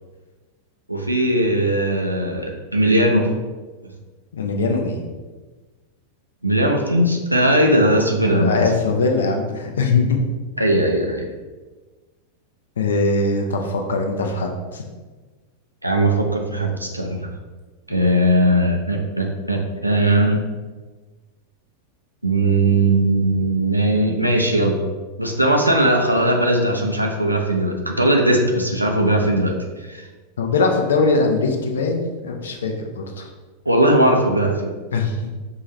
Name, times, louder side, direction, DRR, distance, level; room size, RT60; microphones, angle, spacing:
voice 1, 0.9-3.3 6.4-8.7 10.6-11.2 15.8-17.3 17.9-20.4 22.2-24.9 25.2-29.6 29.9-30.0 33.7-34.7, right 1 dB, 85° right, 1 dB, 0.6 m, -19 dB
voice 2, 4.3-5.0 8.2-10.2 12.8-14.8 30.4-33.3 34.9-35.2, left 3 dB, 65° left, 3 dB, 0.6 m, -21 dB
5.6 x 2.7 x 3.1 m, 1.3 s
figure-of-eight pair, 90°, 0 cm